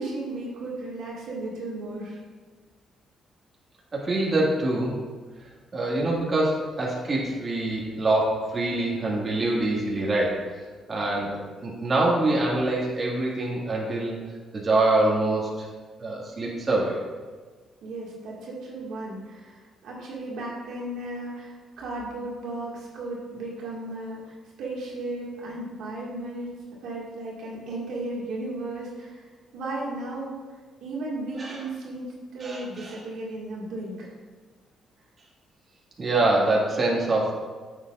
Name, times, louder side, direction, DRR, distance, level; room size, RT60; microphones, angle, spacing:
voice 1, 0.0-2.2 17.8-26.5 26.8-30.4 30.8-34.1, right 2 dB, 80° right, -4 dB, 2.0 m, -35 dB
voice 2, 3.9-5.0 5.7-10.4 10.9-14.2 14.5-15.7 16.0-17.0 31.4-31.6 32.4-32.9 36.0-37.3, right 2 dB, 35° right, -4 dB, 1.9 m, -25 dB
9.5 x 7.3 x 2.5 m, 1.4 s
cardioid pair, 90°, 0 cm